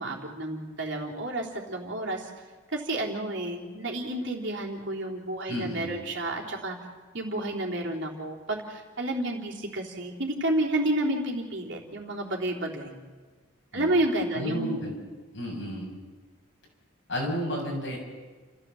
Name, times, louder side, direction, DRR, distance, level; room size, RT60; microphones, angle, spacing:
voice 1, 0.0-2.3 2.7-6.8 7.1-13.0 13.7-14.7, right 1 dB, 60° right, -1 dB, 3.5 m, -30 dB
voice 2, 5.5-6.0 13.7-13.9 14.3-15.0 15.3-16.0 17.1-18.0, equal, 65° left, -1 dB, 6.9 m, -32 dB
29.5 x 14.5 x 7.7 m, 1.4 s
head